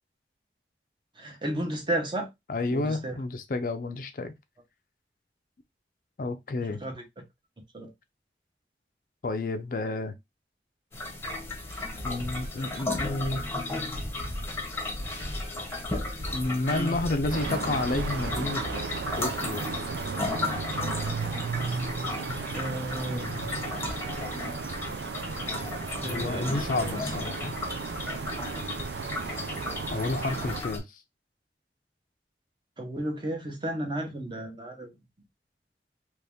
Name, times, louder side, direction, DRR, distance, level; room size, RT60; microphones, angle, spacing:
voice 1, 1.2-2.3 2.7-3.2 6.6-7.0 7.7-7.9 16.7-16.9 22.5-23.3 26.0-26.9 32.8-34.9, right 1 dB, 25° right, 0.9 m, -33 dB
voice 2, 2.5-4.3 6.2-6.8 9.2-10.1 12.0-13.4 16.3-18.6 19.2-19.7 23.1-23.6 26.0-27.6 29.9-31.0, left 2 dB, 50° left, 0.4 m, -30 dB
sound 1, 10.9-30.8, left 2 dB, 15° left, 0.8 m, -35 dB
sound 2, 11.7-19.4 19.7-19.8 20.2-20.3, equal, 55° right, 1.0 m, -38 dB
sound 3, 17.3-30.6, right 5 dB, 75° right, 0.4 m, -35 dB
3.0 x 2.7 x 3.4 m
head